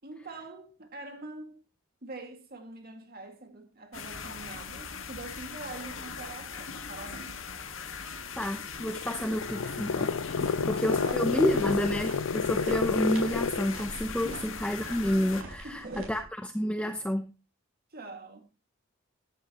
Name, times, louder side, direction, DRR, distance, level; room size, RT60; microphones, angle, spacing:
voice 1, 0.0-1.6 2.0-7.4 10.4-11.8 14.3-14.4 15.6-16.1 16.8-17.0 17.9-18.5, right 3 dB, 45° right, 2.1 m, -44 dB
sound 1, 3.9-15.4, left 6 dB, 65° left, 1.8 m, -40 dB
voice 2, 8.4-10.1 10.6-17.3, equal, 5° left, 0.7 m, -30 dB
sound 2, 8.8-13.8, left 5 dB, 85° left, 0.5 m, -30 dB
sound 3, 10.0-16.2, right 1 dB, 70° right, 5.7 m, -45 dB
15.5 x 11.5 x 3.0 m
head